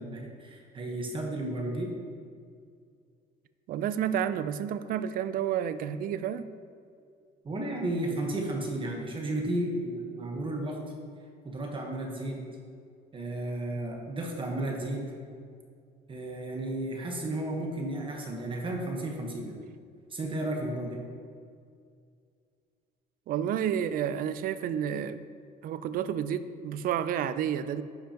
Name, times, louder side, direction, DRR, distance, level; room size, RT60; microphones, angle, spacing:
voice 1, 0.0-1.9 7.4-10.8 11.4-12.4 13.1-15.1 16.1-19.6 20.1-21.0, right 1 dB, 30° right, 1 dB, 1.1 m, -33 dB
voice 2, 3.7-6.5 23.3-25.2 25.6-27.8, right 9 dB, 60° right, 13 dB, 0.4 m, -30 dB
10.0 x 5.6 x 2.9 m, 2.2 s
cardioid pair, 110°, 17 cm